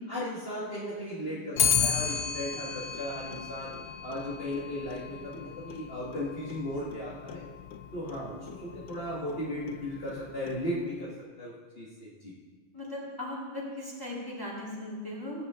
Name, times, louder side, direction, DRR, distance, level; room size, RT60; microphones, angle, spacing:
voice 1, 0.1-7.5 7.9-11.1 11.4-12.3, left 1 dB, 55° left, -7 dB, 2.0 m, -36 dB
Clock, 1.6-10.9, left 7 dB, 70° left, 1.0 m, -34 dB
voice 2, 12.7-15.4, left 1 dB, 20° left, -6 dB, 2.2 m, -38 dB
19.0 x 8.1 x 3.7 m, 1.5 s
omnidirectional pair, 1.2 m